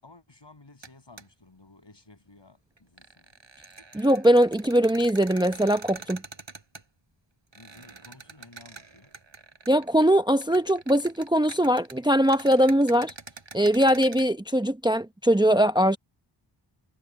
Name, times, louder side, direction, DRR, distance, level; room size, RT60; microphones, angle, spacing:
voice 1, 0.0-3.3 7.5-9.1, left 3 dB, 60° left, 7.7 m, -54 dB
sound 1, 0.8-0.9 1.2-1.3 2.8-6.8 7.5-10.1 10.3-14.3, right 4 dB, 65° right, 5.3 m, -45 dB
voice 2, 3.9-6.2 9.7-13.1 13.5-16.0, equal, 10° right, 0.8 m, -21 dB
wide cardioid pair, 60°, 48 cm